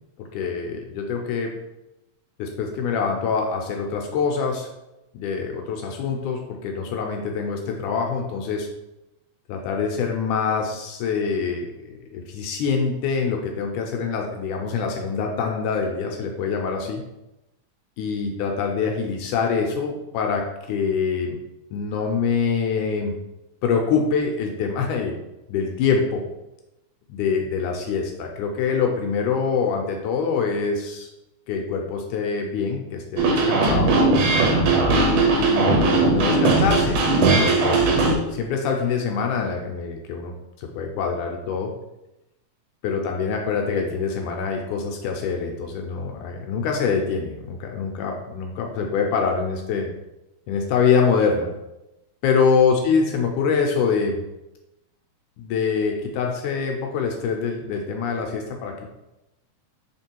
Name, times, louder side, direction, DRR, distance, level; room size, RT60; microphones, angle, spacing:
voice 1, 0.2-1.5 2.4-4.7 5.1-8.7 9.5-17.0 18.0-20.4 20.7-21.4 21.7-23.1 23.6-25.1 25.5-26.2 27.1-31.1 31.5-34.0 35.3-37.0 37.5-40.3 40.6-41.7 42.8-49.9 50.5-51.5 52.2-54.2 55.4-58.9, left 5 dB, 80° left, 2 dB, 2.1 m, -25 dB
sound 1, 33.2-38.2, right 3 dB, 85° right, 2.6 m, -18 dB
6.0 x 3.6 x 4.5 m, 0.94 s
omnidirectional pair, 3.6 m